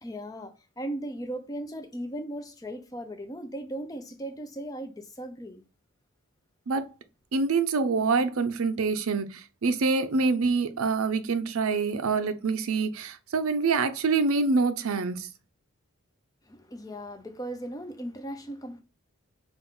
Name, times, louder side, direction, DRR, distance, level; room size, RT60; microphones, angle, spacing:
voice 1, 0.0-5.6 16.5-18.8, right 1 dB, 15° left, 0.5 m, -37 dB
voice 2, 7.3-15.3, right 4 dB, 80° right, 0.5 m, -26 dB
5.3 x 2.5 x 3.6 m
head